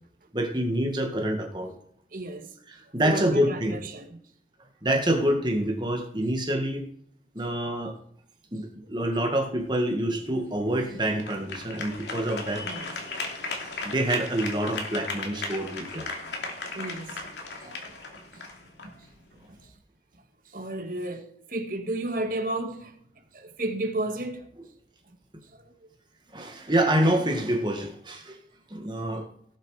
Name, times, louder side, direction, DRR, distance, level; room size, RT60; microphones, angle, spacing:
voice 1, 0.3-1.7 2.7-3.8 4.8-6.8 7.4-8.0 8.5-12.7 13.5-16.1 17.6-17.8 26.3-28.4 28.7-29.3, right 1 dB, 25° right, 1.8 m, -27 dB
voice 2, 2.1-2.5 3.0-4.2 12.6-13.0 16.7-17.2 18.3-18.4 18.8-18.9 20.5-22.9 23.3-24.5 25.5-25.7, right 2 dB, 50° right, 1.8 m, -32 dB
sound 1, 9.6-19.7, left 3 dB, 85° left, 2.9 m, -37 dB
17.5 x 7.7 x 4.9 m
head